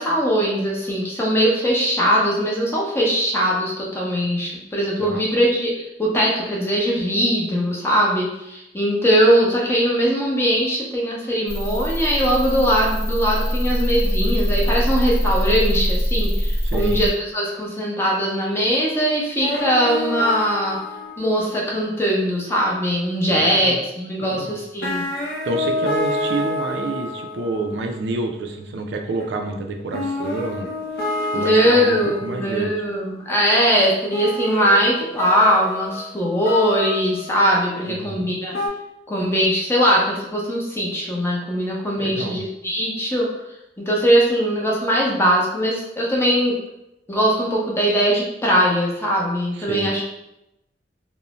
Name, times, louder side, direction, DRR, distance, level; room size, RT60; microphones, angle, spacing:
voice 1, 0.0-20.8 21.2-25.0 31.3-38.6 39.1-43.3 43.8-46.5 47.1-50.0, equal, 15° left, -4 dB, 0.6 m, -20 dB
sound 1, 11.5-17.1, equal, 5° right, 1.0 m, -22 dB
voice 2, 16.6-17.0 23.3-23.8 24.2-24.6 25.4-30.7 31.3-32.7 37.8-38.3 42.0-42.4 49.5-50.0, right 3 dB, 75° right, 3 dB, 0.3 m, -28 dB
sound 2, 19.4-21.6 24.5-24.6 24.8-27.9 29.2-29.3 29.9-32.8 33.3-33.4 34.1-37.7 38.5-38.7, left 2 dB, 60° left, 0.6 m, -28 dB
2.5 x 2.0 x 2.9 m, 0.87 s
head